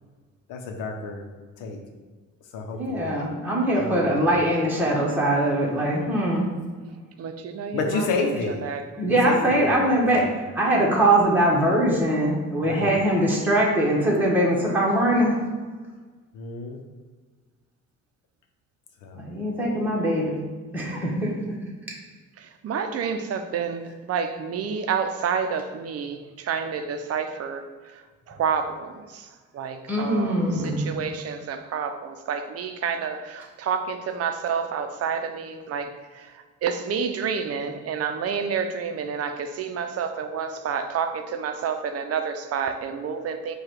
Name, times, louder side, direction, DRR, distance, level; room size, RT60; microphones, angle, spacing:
voice 1, 0.5-1.2 1.6-1.8 2.5-3.3 3.7-4.4 7.7-8.6 9.1-10.3 12.6-13.0 16.3-16.8 19.0-19.3, left 4 dB, 90° left, 3 dB, 0.7 m, -31 dB
voice 2, 2.7-6.5 8.3-8.5 9.0-10.2 10.5-15.4 19.2-20.4 20.7-21.5 29.9-30.9, right 1 dB, 5° right, -4 dB, 1.0 m, -22 dB
voice 3, 7.2-8.1 8.5-8.8 22.6-27.6 28.3-29.2 29.5-30.4 30.8-35.9 36.6-43.5, right 6 dB, 55° right, 8 dB, 0.5 m, -29 dB
4.8 x 2.4 x 4.4 m, 1.4 s
cardioid pair, 90°, 30 cm